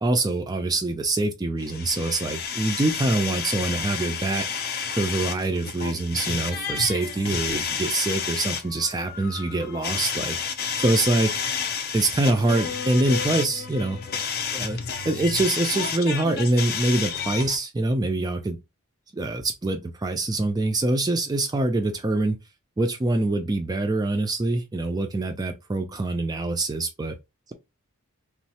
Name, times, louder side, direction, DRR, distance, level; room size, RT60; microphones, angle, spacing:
voice 1, 0.0-4.5 5.0-10.4 10.8-11.3 11.9-14.0 14.5-14.8 15.0-18.6 19.1-22.4 22.8-27.1, right 2 dB, 15° right, 0.3 m, -24 dB
sound 1, 1.6-17.6, left 6 dB, 45° left, 0.5 m, -30 dB
3.0 x 2.0 x 2.8 m
head